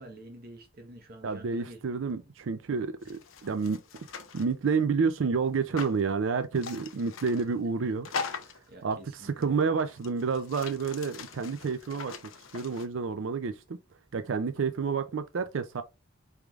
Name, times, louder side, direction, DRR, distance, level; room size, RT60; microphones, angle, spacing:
voice 1, 0.0-1.8 3.0-3.1 3.5-3.6 8.0-8.1 8.7-9.7, right 1 dB, 50° right, 1.2 m, -48 dB
voice 2, 1.2-3.8 4.3-8.1 8.8-12.1 12.5-13.8 14.1-15.8, right 5 dB, 70° right, 0.5 m, -29 dB
sound 1, 3.0-4.5 5.8-6.0 6.6-7.5 8.0-8.7 9.4-9.5 9.9-12.9, left 5 dB, 85° left, 0.7 m, -41 dB
4.6 x 3.5 x 2.4 m
head